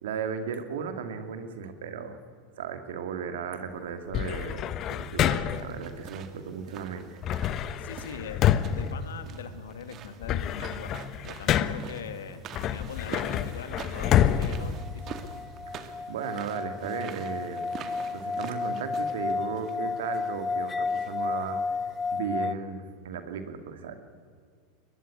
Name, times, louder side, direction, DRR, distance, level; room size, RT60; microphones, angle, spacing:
voice 1, 0.0-2.2 2.6-7.1 7.5-7.7 15.7-17.6 18.1-21.6 22.1-24.0, right 6 dB, 75° right, 8 dB, 2.4 m, -36 dB
sound 1, 4.1-5.8 7.2-9.7 10.0-12.0 12.5-15.6, left 10 dB, 45° left, 1.2 m, -27 dB
sound 2, 5.5-22.2, right 7 dB, 45° right, 2.2 m, -46 dB
voice 2, 7.8-10.9 11.2-15.3, left 7 dB, 80° left, 10 dB, 2.1 m, -42 dB
sound 3, 14.2-22.5, left 4 dB, 15° left, 0.7 m, -32 dB
22.5 x 20.5 x 9.8 m, 2.1 s
hypercardioid pair, 90°, 0 cm